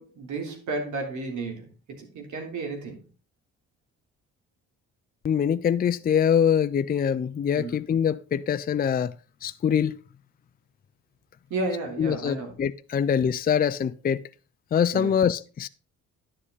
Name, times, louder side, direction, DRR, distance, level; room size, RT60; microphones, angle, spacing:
voice 1, 0.0-3.0 7.6-7.7 11.5-12.6 12.9-13.0 14.9-15.2, right 3 dB, 75° right, 3.5 m, -33 dB
voice 2, 5.2-9.1 9.4-10.0 12.0-14.2 14.7-15.7, left 8 dB, 30° left, 0.5 m, -24 dB
11.0 x 7.5 x 4.0 m
cardioid pair, 90°, 30 cm